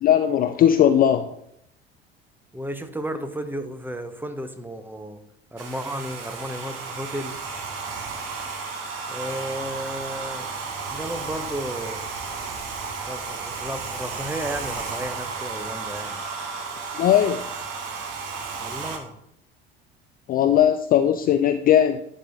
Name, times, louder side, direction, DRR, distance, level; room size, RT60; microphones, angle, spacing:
voice 1, 0.0-1.3 16.9-17.4 20.3-22.0, left 10 dB, 30° left, 8 dB, 0.4 m, -18 dB
voice 2, 2.5-5.2 5.5-7.4 9.1-10.5 10.9-12.1 13.1-16.2 18.6-19.2, right 1 dB, 5° right, 9 dB, 0.7 m, -33 dB
Domestic sounds home sounds, 5.6-19.0, right 4 dB, 50° right, 1.2 m, -33 dB
10.5 x 4.1 x 3.8 m, 0.75 s
figure-of-eight pair, 65°, 30 cm